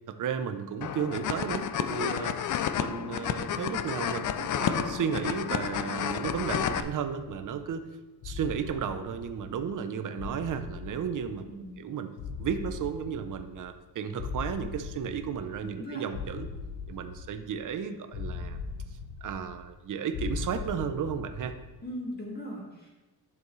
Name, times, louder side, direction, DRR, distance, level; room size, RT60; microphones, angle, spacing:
voice 1, 0.1-2.4 2.7-7.9 8.2-12.1 12.4-16.5 16.9-18.6 19.2-21.5, right 7 dB, 45° right, 8 dB, 0.7 m, -34 dB
sound 1, 0.8-6.8, left 9 dB, 50° left, 0.5 m, -31 dB
sound 2, 5.1-5.6 6.2-7.8 8.2-9.8 10.2-11.8 12.2-13.8 14.2-15.8 16.1-17.7 18.1-19.8 20.1-21.8, left 5 dB, 80° left, 0.9 m, -40 dB
voice 2, 11.5-11.9 15.6-16.0 21.8-22.9, equal, 25° left, -3 dB, 1.9 m, -39 dB
11.0 x 7.0 x 3.2 m, 1.1 s
cardioid pair, 135°, 42 cm